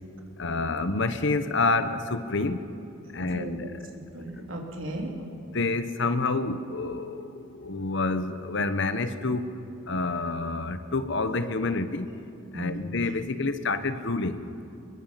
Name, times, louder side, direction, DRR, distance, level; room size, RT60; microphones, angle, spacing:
voice 1, 0.4-2.7 3.1-3.7 5.5-12.1 12.5-14.4, left 3 dB, 60° left, 10 dB, 1.1 m, -28 dB
voice 2, 3.0-3.7 4.1-5.3 12.5-12.9, right 1 dB, 65° right, 0 dB, 3.2 m, -36 dB
24.0 x 22.5 x 5.8 m, 2.7 s
head